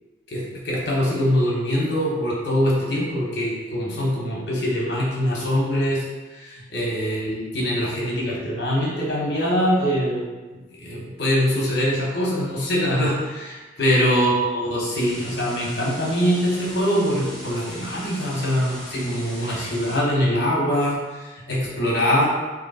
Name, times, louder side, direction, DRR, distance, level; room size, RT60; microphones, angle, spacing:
voice 1, 0.3-6.0 6.4-10.3 10.5-22.3, equal, 65° left, -4 dB, 1.1 m, -23 dB
sound 1, 15.0-20.0, equal, 5° left, 1.1 m, -40 dB
3.1 x 2.9 x 4.1 m, 1.3 s
head